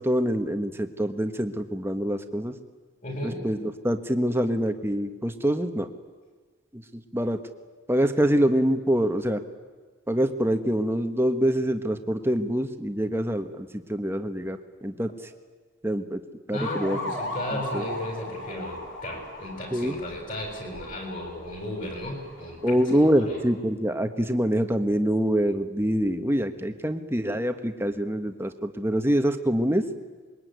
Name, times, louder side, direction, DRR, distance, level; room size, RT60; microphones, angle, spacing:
voice 1, 0.0-2.5 3.2-5.9 6.7-7.4 7.9-9.4 10.1-15.3 15.8-16.2 16.5-17.1 17.7-17.8 19.7-20.0 22.6-29.8, equal, 10° right, 7 dB, 1.4 m, -25 dB
voice 2, 3.0-3.4 16.5-23.4, left 1 dB, 40° left, 3 dB, 7.5 m, -35 dB
sound 1, 16.5-23.5, left 2 dB, 60° left, 5.5 m, -38 dB
26.0 x 22.5 x 9.5 m, 1.4 s
head